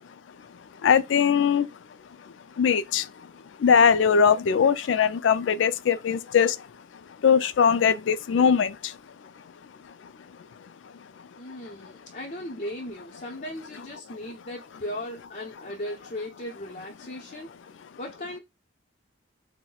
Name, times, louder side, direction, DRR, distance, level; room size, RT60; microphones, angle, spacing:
voice 1, 0.8-1.7 2.6-3.0 3.6-6.6 7.2-8.9, left 7 dB, 80° left, 0.4 m, -20 dB
voice 2, 11.4-17.5 18.0-18.4, left 1 dB, 45° left, 0.8 m, -37 dB
5.6 x 2.1 x 2.3 m
head